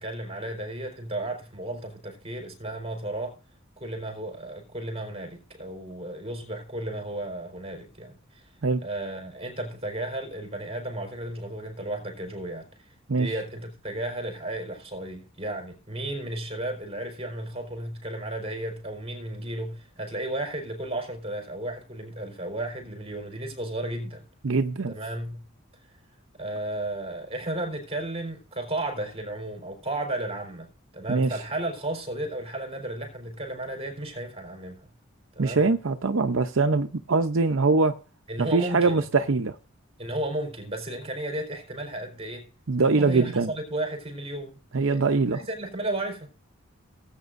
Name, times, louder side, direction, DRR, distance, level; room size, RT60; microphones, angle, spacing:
voice 1, 0.0-3.4 3.8-8.5 8.8-24.3 24.9-25.4 26.4-34.9 35.3-35.7 38.3-39.0 40.0-42.5 42.8-46.3, right 1 dB, 30° right, 4.3 m, -34 dB
voice 2, 24.4-24.9 31.1-31.3 35.4-37.9 38.4-39.5 42.7-43.5 44.7-45.4, right 3 dB, 70° right, 0.7 m, -23 dB
18.5 x 9.0 x 2.6 m
head